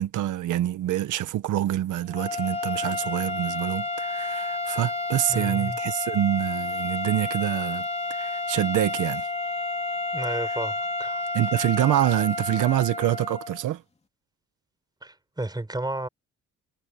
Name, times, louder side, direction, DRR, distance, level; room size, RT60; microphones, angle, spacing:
voice 1, 0.0-9.3 10.3-10.4 11.3-13.8, right 13 dB, 80° right, 1.6 m, -26 dB
sound 1, 2.1-13.6, left 2 dB, 20° left, 2.8 m, -30 dB
voice 2, 5.3-5.8 10.1-11.2 15.0-16.1, right 2 dB, 15° right, 5.2 m, -32 dB
cardioid pair, 90°, 30 cm